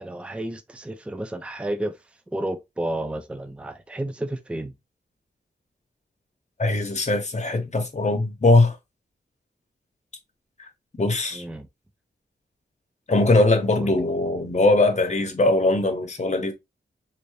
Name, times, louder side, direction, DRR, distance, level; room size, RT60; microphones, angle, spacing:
voice 1, 0.0-2.0 2.3-4.7 11.3-11.7 13.8-14.0, right 1 dB, 5° right, 0.4 m, -31 dB
voice 2, 6.6-8.7 11.0-11.4 13.1-16.5, left 2 dB, 35° left, 0.9 m, -20 dB
3.2 x 2.6 x 3.1 m
wide cardioid pair, 100°, 19 cm